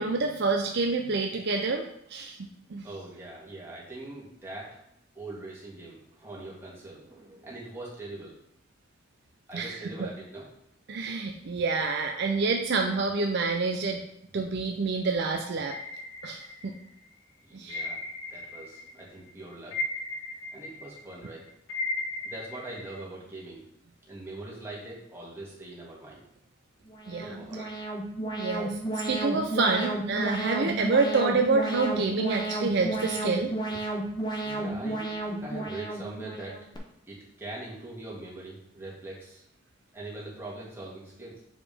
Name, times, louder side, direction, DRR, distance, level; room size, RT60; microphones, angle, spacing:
voice 1, 0.0-1.8 2.1-2.8 9.5-10.1 10.9-14.0 14.3-15.8 16.2-16.8 17.5-17.9 27.1-27.4 28.4-28.8 29.1-33.8, right 4 dB, 55° right, 3 dB, 0.5 m, -27 dB
voice 2, 2.8-4.8 5.1-8.3 9.5-10.5 17.5-18.0 18.3-19.8 20.5-21.5 22.2-23.6 24.1-26.2 27.2-27.7 34.4-36.6 37.1-39.4 39.9-41.4, right 2 dB, 10° right, -6 dB, 1.9 m, -42 dB
sound 1, 15.7-17.0 17.7-19.0 19.3-23.0, left 2 dB, 80° left, 0.8 m, -36 dB
Alarm, 26.9-36.8, right 2 dB, 20° left, 0.8 m, -33 dB
7.0 x 4.9 x 3.5 m, 0.75 s
head